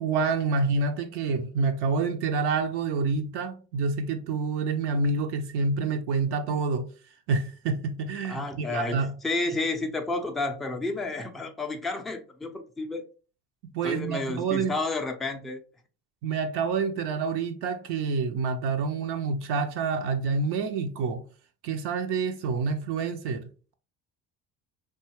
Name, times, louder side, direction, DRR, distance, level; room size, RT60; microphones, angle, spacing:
voice 1, 0.0-6.9 7.3-9.1 13.7-14.7 16.2-21.2 21.6-23.5, right 4 dB, 60° right, 0.5 m, -27 dB
voice 2, 8.3-13.0 13.8-15.6, left 2 dB, ahead, 0.3 m, -31 dB
2.7 x 2.3 x 2.8 m
hypercardioid pair, 60°, 45 cm